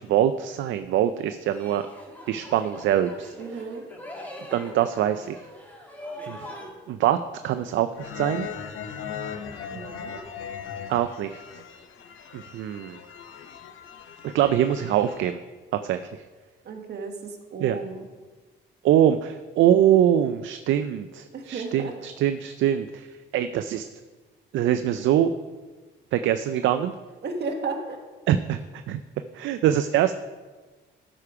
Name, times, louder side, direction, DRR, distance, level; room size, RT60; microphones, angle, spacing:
voice 1, 0.0-1.8 2.3-3.3 4.5-5.4 6.3-6.5 6.9-7.2 7.4-8.5 10.9-11.4 12.3-13.0 14.2-15.4 15.8-16.0 17.6-17.8 18.8-23.1 23.3-23.9 24.5-25.3 26.1-26.9 28.3-28.6 28.9-29.0 29.3-30.1, right 11 dB, 75° right, 10 dB, 0.4 m, -23 dB
sound 1, 1.5-6.7, left 1 dB, 10° left, 1.9 m, -42 dB
voice 2, 3.4-3.8 9.7-10.2 16.6-18.0 21.3-21.9 27.2-28.0, right 4 dB, 55° right, 3 dB, 1.5 m, -34 dB
sound 2, 7.9-15.3, left 7 dB, 80° left, 0.8 m, -38 dB
13.0 x 5.0 x 4.9 m, 1.3 s
cardioid pair, 90°, 20 cm